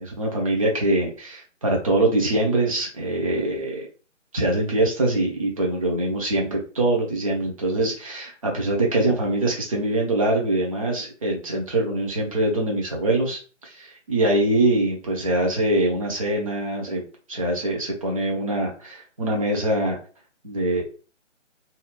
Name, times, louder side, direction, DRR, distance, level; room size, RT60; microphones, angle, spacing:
voice 1, 0.0-3.9 4.3-17.0 17.3-20.0 20.4-20.8, right 1 dB, 30° right, -1 dB, 0.7 m, -23 dB
2.7 x 2.3 x 3.0 m, 0.37 s
figure-of-eight pair, 150°, 37 cm